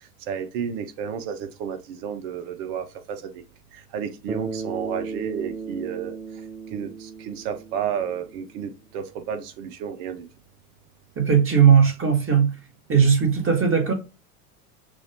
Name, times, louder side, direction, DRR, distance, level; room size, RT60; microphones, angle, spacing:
voice 1, 0.3-3.4 3.7-6.1 6.7-10.3, right 8 dB, 60° right, 1.4 m, -32 dB
Bass guitar, 4.3-8.7, right 4 dB, 10° right, 0.5 m, -35 dB
voice 2, 11.2-12.5 12.9-13.9, right 7 dB, 25° right, 2.1 m, -18 dB
6.3 x 2.8 x 3.0 m
hypercardioid pair, 90°, 47 cm